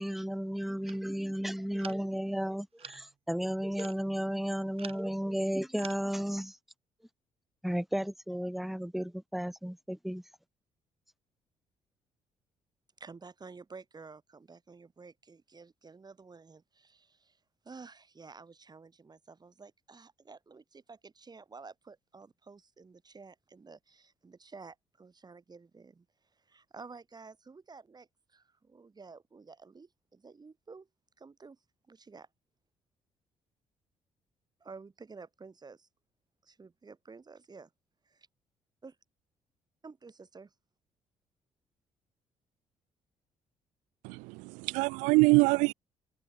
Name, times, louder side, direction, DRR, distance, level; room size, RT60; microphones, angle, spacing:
voice 1, 0.0-6.6 7.6-10.2, equal, ahead, 0.9 m, -33 dB
sound 1, 0.8-1.1 1.8-2.2 2.8-3.1 3.7-4.0 4.8-5.1 5.8-6.0, right 7 dB, 50° right, 3.3 m, -48 dB
voice 2, 13.0-17.4 17.6-26.1 26.4-30.9 31.2-31.6 31.9-32.3 34.6-35.9 36.4-37.7 38.0-38.3 38.8-38.9 39.8-40.5, right 4 dB, 35° right, 4.8 m, -51 dB
voice 3, 44.0-45.7, right 27 dB, 90° right, 0.5 m, -25 dB
supercardioid pair, 60°, 12 cm